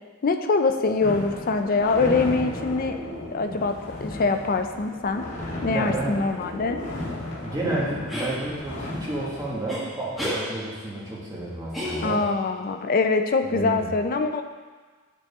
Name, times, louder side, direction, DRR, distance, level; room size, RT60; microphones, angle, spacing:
voice 1, 0.2-3.0 3.3-5.3 5.6-6.8 12.0-14.4, left 3 dB, 45° left, 7 dB, 0.5 m, -24 dB
sound 1, 1.0-9.5, left 1 dB, 60° left, 1.9 m, -34 dB
voice 2, 5.7-6.2 7.4-12.2 13.5-13.9, right 2 dB, 15° right, -6 dB, 1.7 m, -31 dB
sound 2, 8.1-8.4 9.7-9.8 10.2-10.4 11.7-12.4, equal, ahead, 1.5 m, -30 dB
7.6 x 6.8 x 3.6 m, 1.4 s
head